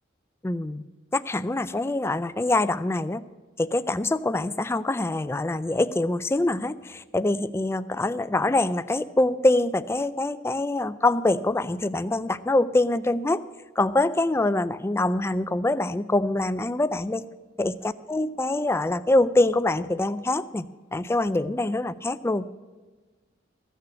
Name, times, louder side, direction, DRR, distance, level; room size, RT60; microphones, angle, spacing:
voice 1, 0.4-0.8 1.1-3.2 3.6-13.4 13.8-17.2 17.6-17.7 18.1-22.4, left 2 dB, 15° left, 14 dB, 0.3 m, -24 dB
15.0 x 6.7 x 8.1 m, 1.3 s
head